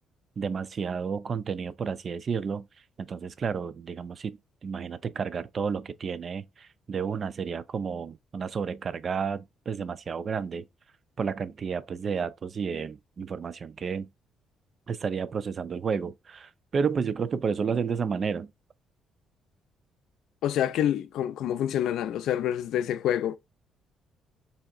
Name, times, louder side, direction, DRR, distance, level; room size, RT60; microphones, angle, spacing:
voice 1, 0.4-2.6 3.0-10.7 11.2-14.1 14.9-18.5, right 6 dB, 45° right, 0.4 m, -31 dB
voice 2, 20.4-23.4, left 10 dB, 75° left, 0.4 m, -27 dB
4.3 x 2.8 x 2.3 m
cardioid pair, 80°, 0 cm